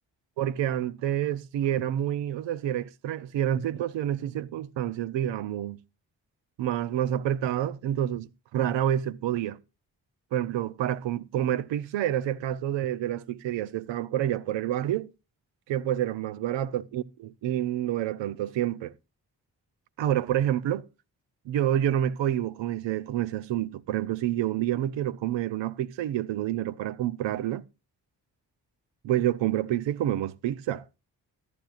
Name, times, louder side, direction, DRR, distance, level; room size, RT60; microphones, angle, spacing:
voice 1, 0.4-5.8 6.6-9.6 10.3-15.1 15.7-18.9 20.0-20.9 21.5-27.6 29.0-30.8, right 11 dB, 90° right, 0.6 m, -28 dB
14.5 x 10.5 x 2.4 m
supercardioid pair, 45°, 43 cm